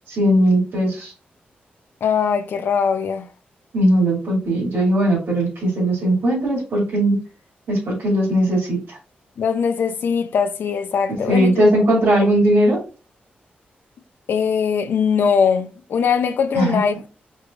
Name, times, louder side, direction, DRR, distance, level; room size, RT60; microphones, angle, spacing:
voice 1, 0.1-1.1 3.7-7.2 7.7-9.0 11.3-12.8 16.5-16.8, right 1 dB, 85° right, 2.5 m, -18 dB
voice 2, 2.0-3.3 9.4-11.5 14.3-17.1, left 6 dB, 75° left, 0.6 m, -21 dB
5.2 x 3.3 x 2.5 m
wide cardioid pair, 135°, 4 cm